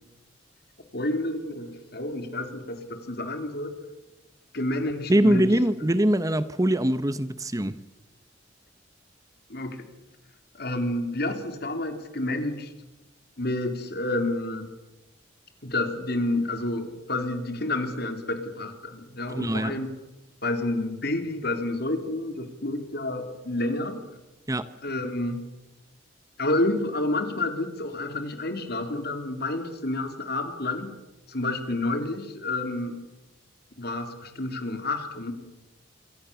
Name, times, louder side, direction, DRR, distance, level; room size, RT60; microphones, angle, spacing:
voice 1, 0.9-3.7 4.5-5.4 9.5-9.9 10.5-12.7 13.4-14.7 15.6-19.9 20.4-24.0 24.8-25.4 26.4-31.0 31.3-33.0 33.8-35.3, left 2 dB, 60° left, 3.6 m, -29 dB
voice 2, 5.1-7.8 19.3-19.7 24.5-24.6, right 1 dB, 20° right, 0.9 m, -23 dB
26.5 x 25.0 x 7.1 m
head